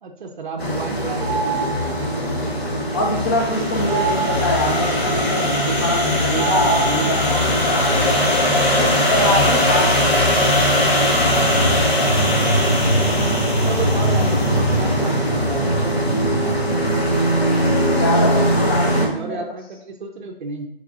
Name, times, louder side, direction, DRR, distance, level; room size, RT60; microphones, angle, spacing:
voice 1, 0.0-1.9 12.0-13.0 13.5-16.8 19.0-20.7, right 4 dB, 50° right, 2 dB, 0.5 m, -32 dB
sound 1, 0.6-19.1, equal, 80° left, 1.1 m, -19 dB
sound 2, 1.2-2.2 3.9-4.9 6.4-7.5, right 5 dB, 35° right, 1.0 m, -26 dB
voice 2, 2.9-8.2 8.8-9.9 17.9-19.4, left 1 dB, 20° left, -2 dB, 0.5 m, -24 dB
3.5 x 3.4 x 2.3 m, 0.75 s
figure-of-eight pair, 145°, 30 cm